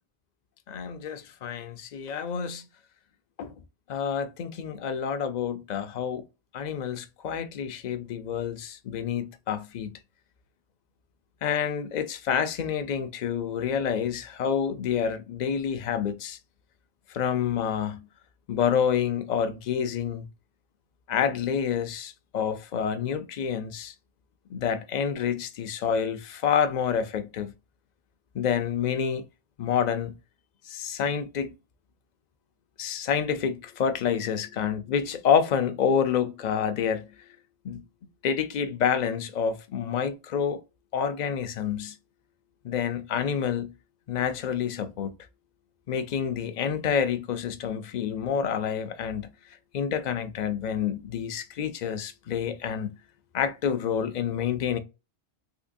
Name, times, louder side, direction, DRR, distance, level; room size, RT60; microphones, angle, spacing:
voice 1, 0.7-2.7 3.4-3.5 3.9-6.3 6.5-9.9 11.4-16.4 17.1-18.1 18.5-20.3 21.1-23.9 24.5-27.5 28.3-29.2 29.6-30.1 30.7-31.5 32.8-37.1 37.6-37.8 38.2-40.6 40.9-42.0 42.6-43.7 44.1-45.1 45.9-49.3 49.7-52.9 53.3-54.8, left 7 dB, 55° left, 0.5 m, -28 dB
3.7 x 2.8 x 2.5 m
omnidirectional pair, 1.1 m